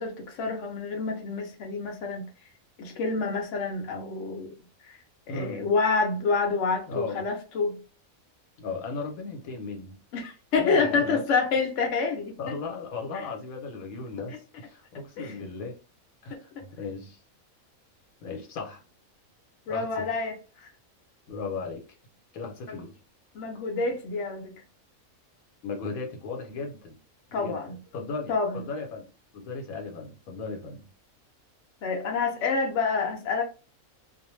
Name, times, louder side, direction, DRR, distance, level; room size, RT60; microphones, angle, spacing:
voice 1, 0.0-2.3 2.8-4.6 4.8-5.0 5.3-7.8 10.1-12.5 15.2-15.3 16.3-16.7 19.7-20.7 22.7-22.8 23.3-24.5 27.3-27.8 28.3-28.6 31.8-33.4, left 4 dB, 65° left, 1.0 m, -28 dB
voice 2, 5.3-5.7 6.9-7.3 8.6-10.0 10.5-11.2 12.4-15.8 16.2-17.2 18.2-18.8 19.7-20.1 21.3-21.8 22.3-23.0 25.6-27.0 27.3-30.9, left 4 dB, 85° left, 1.2 m, -36 dB
2.5 x 2.1 x 3.0 m
omnidirectional pair, 1.5 m